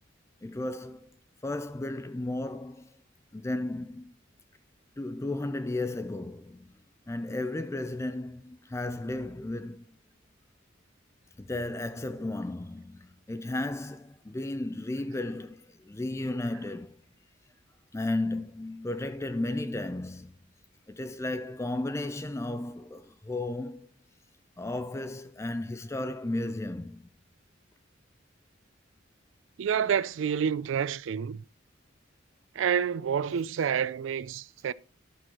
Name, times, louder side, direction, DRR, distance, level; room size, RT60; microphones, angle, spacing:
voice 1, 0.4-1.1 1.4-2.9 3.3-4.1 5.0-6.7 7.1-9.8 11.4-17.0 17.9-20.3 20.9-23.9 24.6-27.1, left 2 dB, 15° left, 0.4 m, -34 dB
voice 2, 29.6-31.4 32.6-34.7, right 7 dB, 75° right, 0.4 m, -28 dB
11.5 x 6.2 x 4.3 m
head